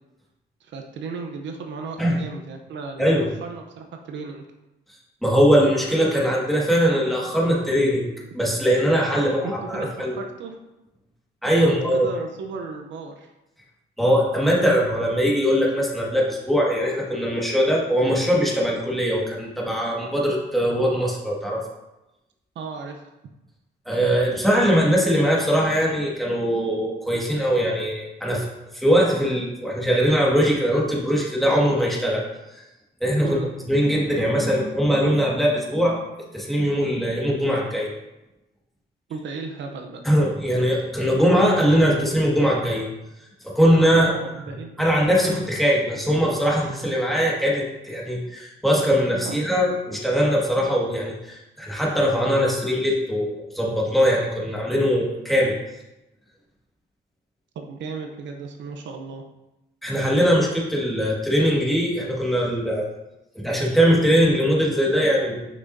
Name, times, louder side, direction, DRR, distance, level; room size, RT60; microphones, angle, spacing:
voice 1, 0.6-4.4 9.4-10.6 11.6-13.3 22.6-23.1 33.2-33.5 39.1-40.0 43.9-44.9 49.3-49.4 57.6-59.2, right 4 dB, 70° right, 3 dB, 0.8 m, -35 dB
voice 2, 5.2-10.2 11.4-12.1 14.0-21.7 23.8-28.4 28.7-32.2 32.5-32.6 33.0-33.4 33.7-36.0 36.3-37.9 40.0-42.9 43.4-44.1 44.8-55.6 59.8-62.9 63.3-65.5, equal, ahead, -4 dB, 1.8 m, -21 dB
6.2 x 6.0 x 2.7 m, 0.97 s
cardioid pair, 90°, 20 cm